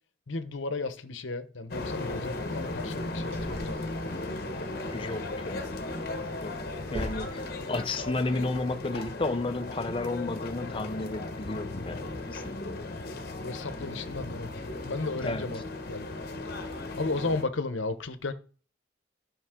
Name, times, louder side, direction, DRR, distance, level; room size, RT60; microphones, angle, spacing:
voice 1, 0.3-4.2 13.4-14.5 14.8-15.6 15.9-16.1 17.0-18.3, left 3 dB, 70° left, 0.9 m, -34 dB
sound 1, 1.7-17.4, left 2 dB, 50° left, 1.1 m, -36 dB
sound 2, 1.8-8.1, equal, 30° right, 5.4 m, -43 dB
voice 2, 4.9-5.9 6.4-6.6 6.9-12.9 15.2-15.6, left 2 dB, 25° left, 0.6 m, -33 dB
12.5 x 5.4 x 3.7 m
head